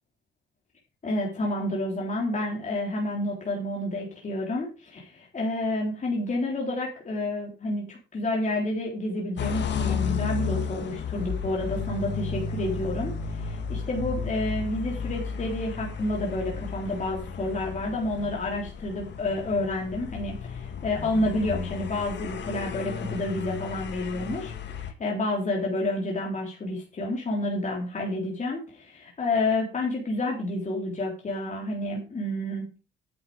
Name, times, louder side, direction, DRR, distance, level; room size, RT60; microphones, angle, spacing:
voice 1, 1.0-32.6, left 1 dB, 40° left, -1 dB, 3.7 m, -29 dB
sound 1, 9.4-24.9, left 6 dB, 65° left, 1.9 m, -33 dB
10.5 x 7.8 x 5.1 m, 0.32 s
cardioid pair, 90°, 20 cm